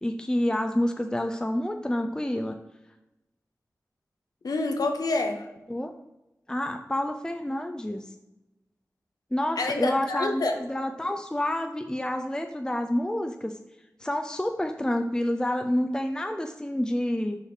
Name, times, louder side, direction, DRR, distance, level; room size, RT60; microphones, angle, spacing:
voice 1, 0.0-2.6 5.7-5.9 6.5-8.1 9.3-13.6 14.0-17.4, left 1 dB, 10° left, 5 dB, 0.5 m, -28 dB
voice 2, 4.4-5.5 9.6-10.5, left 2 dB, 90° left, 5 dB, 0.9 m, -27 dB
5.7 x 4.9 x 4.7 m, 0.96 s
wide cardioid pair, 50°, 6 cm